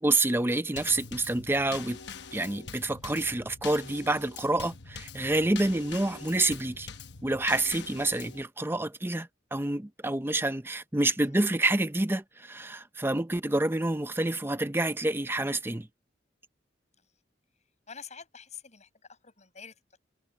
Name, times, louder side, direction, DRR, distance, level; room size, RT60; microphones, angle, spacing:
voice 1, 0.0-2.0 2.3-6.9 7.2-15.9, right 2 dB, 10° right, 0.7 m, -28 dB
Drum kit / Snare drum / Bass drum, 0.8-8.4, left 6 dB, 65° left, 1.0 m, -44 dB
voice 2, 17.9-20.0, left 6 dB, 40° left, 8.0 m, -48 dB
head